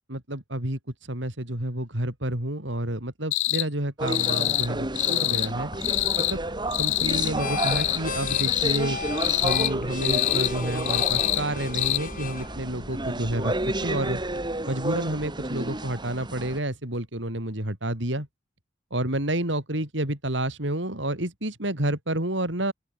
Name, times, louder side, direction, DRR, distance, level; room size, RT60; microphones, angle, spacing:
voice 1, 0.1-0.8 1.1-5.7 6.3-6.4 6.8-9.0 9.4-13.5 13.8-14.2 14.7-18.3 18.9-22.7, right 1 dB, 70° right, 5.0 m, -29 dB
sound 1, 3.3-3.7 4.1-4.7 5.0-5.5 5.8-6.3 6.7-7.3 7.6-8.0 8.3-8.8 9.2-9.7 10.0-10.5 10.9-11.4 11.7-12.0, left 16 dB, 80° left, 2.8 m, -25 dB
sound 2, 4.0-16.6, right 2 dB, 25° right, 3.3 m, -32 dB
sound 3, 5.7-14.5, left 4 dB, 45° left, 7.4 m, -36 dB
open air
head